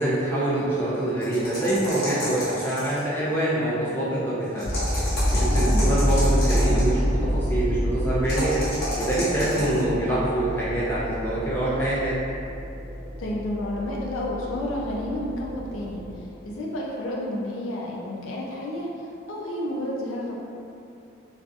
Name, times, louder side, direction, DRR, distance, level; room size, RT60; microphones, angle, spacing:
voice 1, 0.0-4.8 5.1-8.6 9.0-12.2, right 1 dB, 10° left, -9 dB, 0.5 m, -25 dB
sound 1, 1.2-3.1 4.6-6.9 8.3-9.8, left 1 dB, 50° left, 1.0 m, -31 dB
sound 2, 4.6-16.6, equal, 50° right, 0.9 m, -27 dB
voice 2, 13.2-20.3, left 1 dB, 90° left, -3 dB, 0.5 m, -31 dB
2.6 x 2.4 x 2.4 m, 2.6 s
head